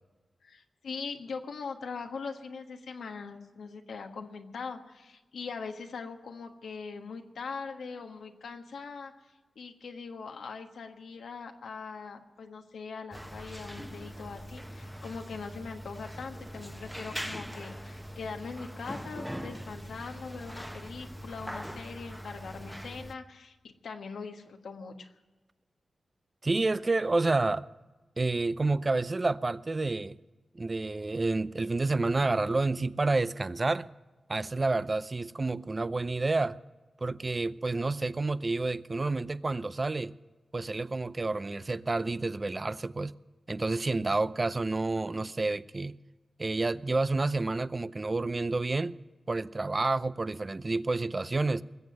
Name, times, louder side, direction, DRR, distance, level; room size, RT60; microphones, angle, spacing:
voice 1, 0.4-9.1 9.5-25.1, left 5 dB, 85° left, 1.4 m, -41 dB
sound 1, 13.1-23.1, equal, ahead, 1.0 m, -42 dB
voice 2, 26.4-27.7 28.2-30.2 30.5-33.9 34.3-36.6 37.0-40.1 40.5-43.1 43.5-45.9 46.4-49.0 49.3-51.6, right 3 dB, 40° right, 0.6 m, -29 dB
20.5 x 7.7 x 9.2 m
cardioid pair, 45°, 0 cm